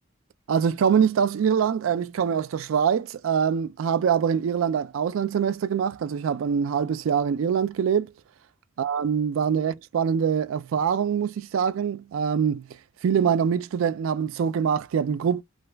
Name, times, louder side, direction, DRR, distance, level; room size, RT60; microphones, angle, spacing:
voice 1, 0.5-8.1 8.8-15.4, right 7 dB, 80° right, 0.3 m, -24 dB
2.5 x 2.3 x 3.3 m
head